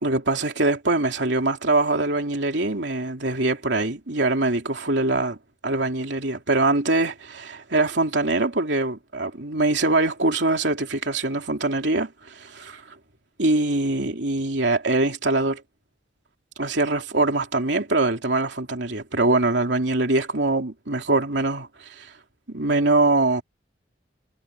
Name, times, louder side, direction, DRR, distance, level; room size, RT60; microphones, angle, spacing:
voice 1, 0.0-5.4 5.6-12.8 13.4-15.6 16.6-22.1 22.5-23.4, right 2 dB, 75° right, 3.1 m, -23 dB
head